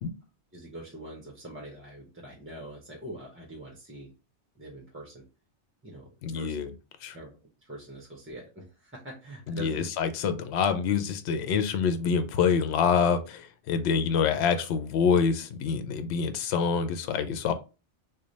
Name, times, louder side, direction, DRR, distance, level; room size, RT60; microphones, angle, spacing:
voice 1, 0.5-4.1 4.6-5.2 5.8-6.5 7.1-7.3 7.6-9.8, right 1 dB, 15° right, -2 dB, 0.5 m, -43 dB
voice 2, 6.2-6.7 7.0-7.2 9.5-17.5, left 6 dB, 70° left, 10 dB, 0.8 m, -26 dB
3.2 x 2.2 x 3.9 m, 0.31 s
omnidirectional pair, 1.2 m